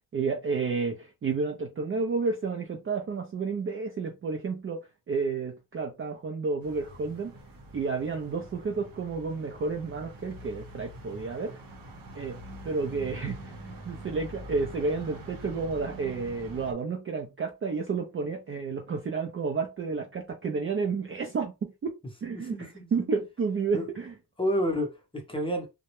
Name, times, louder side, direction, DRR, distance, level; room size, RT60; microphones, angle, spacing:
voice 1, 0.1-4.8 5.1-7.3 7.7-11.6 12.1-12.4 12.6-13.5 13.9-21.9 22.2-24.1, right 4 dB, 35° right, 0.4 m, -31 dB
sound 1, 6.6-16.7, right 1 dB, 55° right, 0.8 m, -45 dB
voice 2, 22.3-23.1 23.7-23.8 24.4-25.7, equal, 15° left, 0.7 m, -30 dB
2.2 x 2.0 x 2.9 m
cardioid pair, 120°, 42 cm